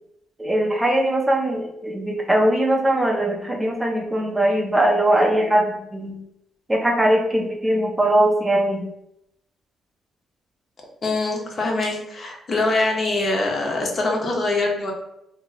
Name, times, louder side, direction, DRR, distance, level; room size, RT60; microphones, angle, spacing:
voice 1, 0.4-6.1 6.7-8.8, right 1 dB, 10° right, 0 dB, 0.5 m, -20 dB
voice 2, 11.0-14.9, left 2 dB, 45° left, 0 dB, 0.8 m, -23 dB
2.7 x 2.2 x 3.9 m, 0.82 s
cardioid pair, 90°, 0 cm